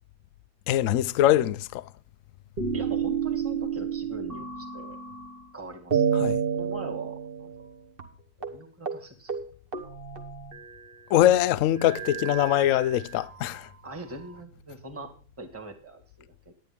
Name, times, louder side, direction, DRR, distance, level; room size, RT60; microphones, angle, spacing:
voice 1, 0.7-1.8 6.2-6.4 11.1-13.7, left 12 dB, 75° left, 0.7 m, -23 dB
sound 1, 2.6-5.5 5.9-7.7 8.0-8.1 8.4-8.6 8.9-9.0 9.3-11.0 11.8-13.3 14.1-15.0, right 7 dB, 35° right, 1.2 m, -31 dB
voice 2, 2.7-5.0 5.5-7.5 8.4-9.3 13.8-16.5, right 2 dB, 5° right, 1.7 m, -42 dB
12.5 x 9.9 x 3.5 m
omnidirectional pair, 2.0 m